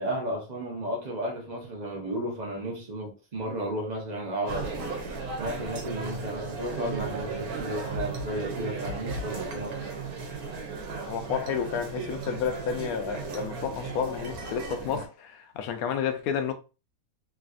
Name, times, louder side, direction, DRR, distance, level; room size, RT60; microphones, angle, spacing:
voice 1, 0.0-5.0 5.4-9.8, right 1 dB, 40° right, 0.6 m, -33 dB
sound 1, 4.5-15.1, right 4 dB, 90° right, 1.2 m, -35 dB
voice 2, 11.1-16.5, left 7 dB, 80° left, 1.0 m, -31 dB
3.1 x 2.6 x 2.4 m
omnidirectional pair, 1.5 m